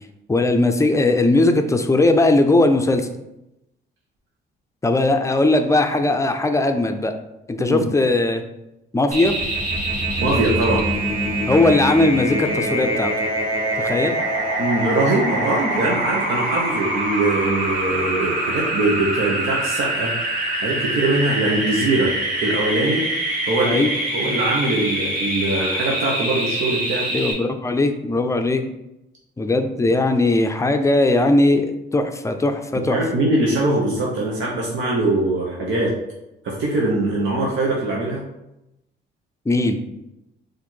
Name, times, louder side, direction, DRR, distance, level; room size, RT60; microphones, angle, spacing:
voice 1, 0.3-3.1 4.8-7.1 7.5-8.4 8.9-9.3 11.5-13.1 13.8-14.2 23.6-23.9 27.1-28.6 29.4-33.0 39.5-39.8, left 2 dB, 15° left, 6 dB, 0.5 m, -18 dB
sound 1, 9.1-27.3, right 1 dB, 45° right, 1.5 m, -24 dB
voice 2, 10.2-10.8 14.6-20.1 20.6-22.1 22.4-23.0 23.4-23.8 24.1-27.1 32.9-35.9 36.4-38.2, right 2 dB, 75° right, -3 dB, 0.9 m, -22 dB
4.3 x 2.6 x 4.4 m, 0.89 s
cardioid pair, 90°, 20 cm